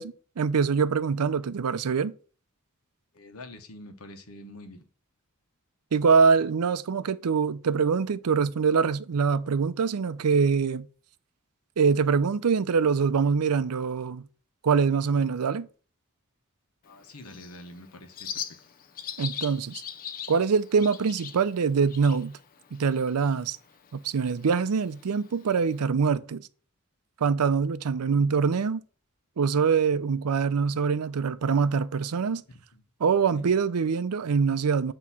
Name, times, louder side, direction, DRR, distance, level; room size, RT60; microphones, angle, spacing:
voice 1, 0.0-2.1 5.9-10.9 11.8-14.3 14.6-15.7 19.2-19.8 20.3-22.4 22.7-23.6 23.9-26.5 27.2-28.8 29.4-32.4 33.0-34.9, right 5 dB, 85° right, 0.5 m, -24 dB
voice 2, 3.1-4.8 16.8-18.4 32.7-32.8 33.3-33.4, left 1 dB, 75° left, 1.2 m, -45 dB
Bird, 16.8-25.8, left 8 dB, 40° left, 0.5 m, -42 dB
8.4 x 3.0 x 5.9 m
head